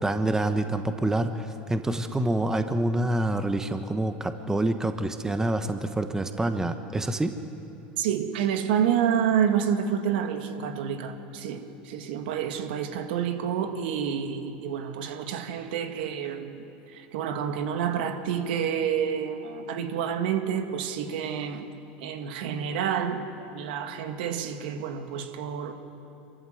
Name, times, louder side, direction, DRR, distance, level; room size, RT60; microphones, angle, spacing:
voice 1, 0.0-7.3, right 1 dB, 10° right, 8 dB, 1.3 m, -27 dB
voice 2, 8.0-21.7 22.0-25.7, right 8 dB, 75° right, 6 dB, 2.1 m, -29 dB
26.5 x 14.5 x 7.9 m, 2.8 s
hypercardioid pair, 105°, 5 cm